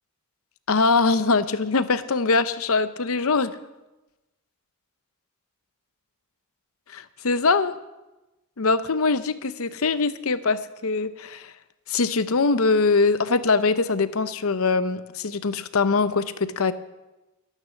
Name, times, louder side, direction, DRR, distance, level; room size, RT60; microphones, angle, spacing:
voice 1, 0.7-3.5 6.9-7.8 8.6-11.5 11.9-16.7, left 4 dB, 70° left, 13 dB, 0.8 m, -22 dB
13.0 x 12.5 x 6.3 m, 1.0 s
head